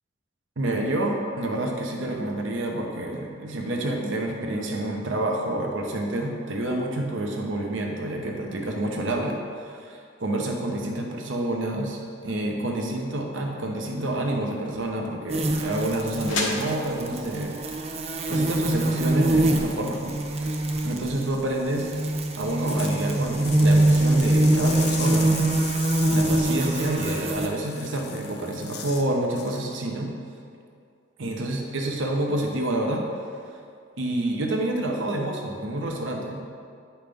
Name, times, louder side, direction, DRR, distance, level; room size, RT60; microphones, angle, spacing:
voice 1, 0.6-17.7 18.3-20.6 20.8-21.9 22.4-25.3 25.7-25.8 26.1-30.1 31.2-33.0 34.0-36.4, right 1 dB, 85° right, 0 dB, 0.9 m, -28 dB
sound 1, 13.6-19.5, left 3 dB, 85° left, 1.1 m, -38 dB
sound 2, 15.3-27.5, right 1 dB, 30° right, 0.5 m, -24 dB
sound 3, 22.5-29.1 29.4-29.7, left 6 dB, 55° left, 0.6 m, -38 dB
8.9 x 5.7 x 3.5 m, 2.3 s
head